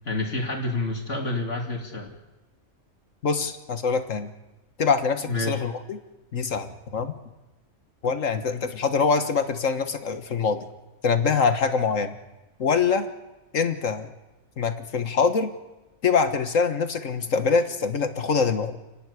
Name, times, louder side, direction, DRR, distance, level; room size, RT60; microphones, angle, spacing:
voice 1, 0.0-2.1 5.3-5.6, left 2 dB, 65° left, 2 dB, 3.0 m, -28 dB
voice 2, 3.2-4.3 4.8-6.0 6.3-7.1 8.0-10.7 11.0-12.2 12.6-13.1 13.5-14.1 14.6-15.5 16.0-18.8, left 5 dB, 85° left, 9 dB, 1.9 m, -24 dB
29.0 x 12.0 x 9.6 m, 1.1 s
omnidirectional pair, 1.3 m